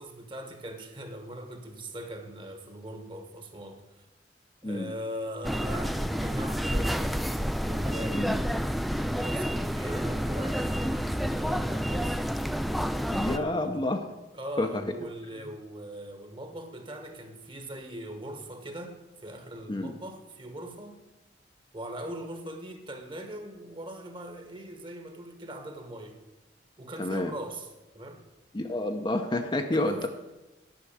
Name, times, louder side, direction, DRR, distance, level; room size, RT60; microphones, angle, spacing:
voice 1, 0.0-3.8 4.6-8.4 8.9-12.2 13.2-13.7 14.3-21.0 21.7-26.2 26.8-27.7 27.9-28.2 29.7-30.1, right 1 dB, 30° right, 6 dB, 1.3 m, -41 dB
sound 1, 5.4-13.4, equal, ahead, 0.3 m, -29 dB
voice 2, 13.1-14.0 14.6-14.8 19.7-19.9 27.0-27.3 28.5-30.1, left 2 dB, 25° left, 5 dB, 0.7 m, -29 dB
10.0 x 6.0 x 8.6 m, 1.1 s
head